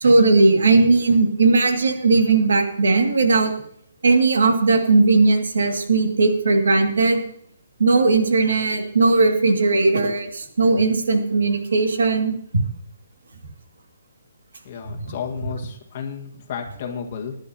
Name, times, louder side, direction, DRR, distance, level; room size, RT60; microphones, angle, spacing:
voice 1, 0.0-3.5 4.0-7.2 7.8-12.3 15.0-15.1, right 3 dB, 80° right, 4 dB, 2.1 m, -18 dB
voice 2, 14.6-17.4, left 7 dB, 30° left, 2 dB, 1.6 m, -32 dB
21.5 x 10.5 x 2.9 m, 0.65 s
hypercardioid pair, 175°, 0 cm